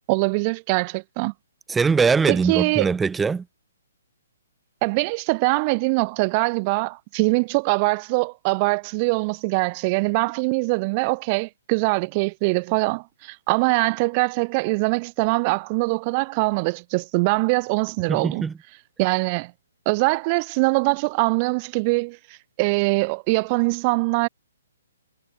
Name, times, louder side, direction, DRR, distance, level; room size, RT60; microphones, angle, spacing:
voice 1, 0.1-1.3 2.3-2.9 4.8-18.5 19.0-19.5 19.9-22.2 22.6-24.3, right 29 dB, 25° right, 0.8 m, -22 dB
voice 2, 1.7-3.4 18.1-18.5, right 5 dB, 5° right, 0.4 m, -21 dB
hypercardioid pair, 170°, 0 cm